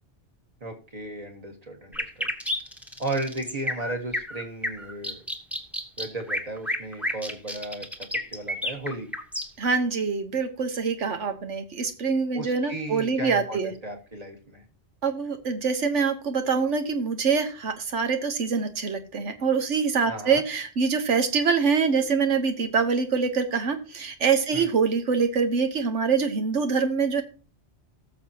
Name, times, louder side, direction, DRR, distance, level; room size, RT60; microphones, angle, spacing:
voice 1, 0.6-2.3 3.0-5.2 6.0-9.1 12.3-14.6 20.1-20.4 24.5-24.7, right 2 dB, 35° right, 3 dB, 1.7 m, -35 dB
sound 1, 1.9-9.7, left 1 dB, ahead, 1.0 m, -30 dB
voice 2, 9.6-13.7 15.0-27.2, right 5 dB, 85° right, 7 dB, 1.5 m, -25 dB
18.5 x 6.7 x 2.9 m, 0.36 s
omnidirectional pair, 1.2 m